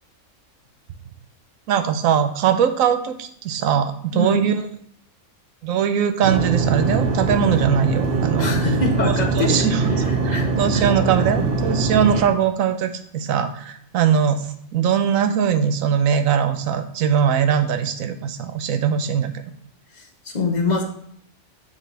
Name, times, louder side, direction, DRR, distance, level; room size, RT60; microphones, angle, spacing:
voice 1, 1.7-4.7 5.6-8.5 9.0-10.0 10.2-19.3, right 8 dB, 80° right, 8 dB, 1.0 m, -21 dB
sound 1, 6.2-12.2, right 4 dB, 45° right, 1.0 m, -22 dB
voice 2, 8.4-9.7 10.3-10.5 10.7-10.8 20.0-20.8, left 3 dB, 40° left, 3 dB, 0.8 m, -24 dB
7.4 x 4.2 x 3.3 m, 0.65 s
omnidirectional pair, 1.4 m